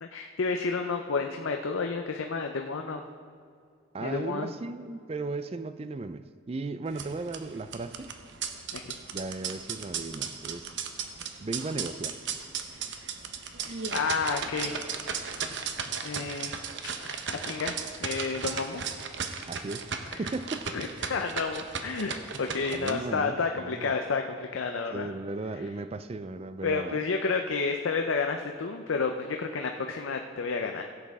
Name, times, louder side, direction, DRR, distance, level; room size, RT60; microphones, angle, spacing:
voice 1, 0.0-3.0 4.0-4.5 8.7-9.0 13.7-14.9 16.0-16.6 17.0-18.8 20.1-20.2 20.7-25.1 26.6-30.8, left 4 dB, 85° left, 4 dB, 0.6 m, -31 dB
voice 2, 3.9-8.1 9.1-10.8 11.4-12.2 15.8-15.9 19.5-19.9 20.2-20.7 22.7-23.9 24.9-27.0, right 3 dB, 30° right, 12 dB, 0.4 m, -36 dB
sound 1, 6.9-22.9, right 6 dB, 65° right, 0.8 m, -36 dB
16.0 x 8.7 x 3.6 m, 2.2 s
head